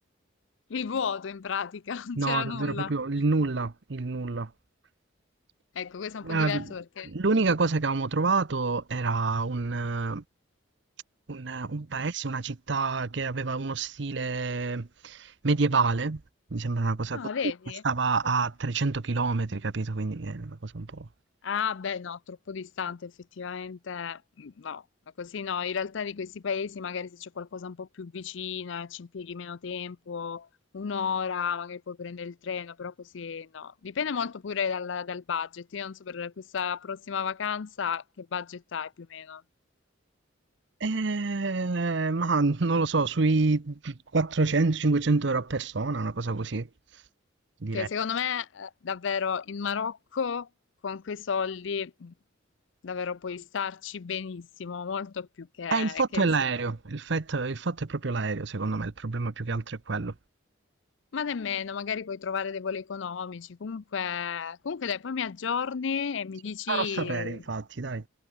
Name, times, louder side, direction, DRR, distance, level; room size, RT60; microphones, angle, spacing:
voice 1, 0.7-2.9 5.7-7.1 17.1-17.8 21.4-24.8 25.2-30.5 30.7-39.4 47.7-50.5 50.8-52.1 52.8-56.3 61.1-67.4, left 6 dB, 70° left, 0.5 m, -33 dB
voice 2, 2.2-4.5 6.2-6.7 7.0-10.2 11.3-16.2 16.5-17.3 17.8-21.1 40.8-46.7 47.6-47.9 55.7-60.1 66.7-68.0, right 3 dB, 60° right, 0.8 m, -28 dB
head